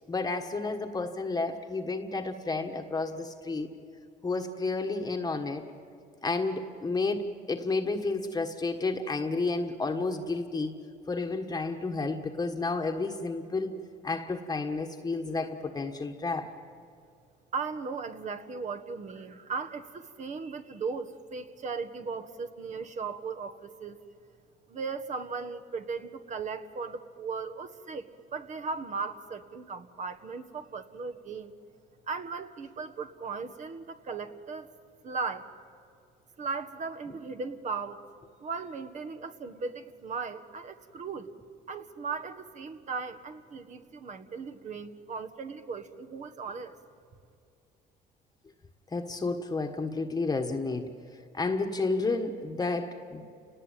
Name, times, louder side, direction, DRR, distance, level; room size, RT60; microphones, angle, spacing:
voice 1, 0.1-3.7 4.2-5.6 6.2-10.8 11.1-13.7 14.0-16.5 48.9-50.9 51.3-53.2, left 3 dB, 20° left, 4 dB, 1.4 m, -31 dB
voice 2, 17.5-24.0 24.7-31.5 32.1-34.7 35.0-35.5 36.4-38.0 38.4-41.3 41.7-46.7, right 5 dB, 45° right, 10 dB, 1.6 m, -37 dB
29.5 x 19.0 x 9.2 m, 2.5 s
cardioid pair, 110°, 17 cm